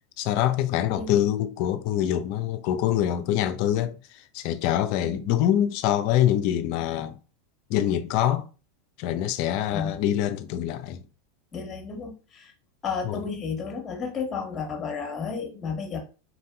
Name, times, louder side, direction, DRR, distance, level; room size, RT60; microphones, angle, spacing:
voice 1, 0.2-7.2 7.7-8.5 9.0-11.0 13.0-13.3, left 11 dB, 55° left, 0.4 m, -25 dB
voice 2, 11.5-12.5 12.8-16.0, left 5 dB, 30° left, 1.1 m, -32 dB
4.2 x 2.7 x 2.2 m
hypercardioid pair, 95°, 0 cm